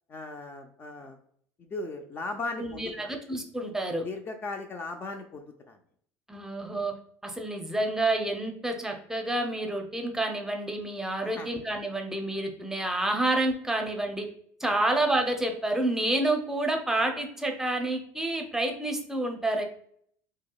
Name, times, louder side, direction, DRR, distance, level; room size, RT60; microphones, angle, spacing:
voice 1, 0.1-1.2 1.6-3.1 4.0-5.8 11.2-11.5 14.6-14.7, left 3 dB, 30° left, 4 dB, 0.4 m, -37 dB
voice 2, 2.6-4.0 6.3-6.9 7.2-14.3 14.6-19.6, right 2 dB, 5° right, 3 dB, 0.6 m, -29 dB
4.6 x 2.0 x 2.3 m, 0.64 s
supercardioid pair, 100°, 7 cm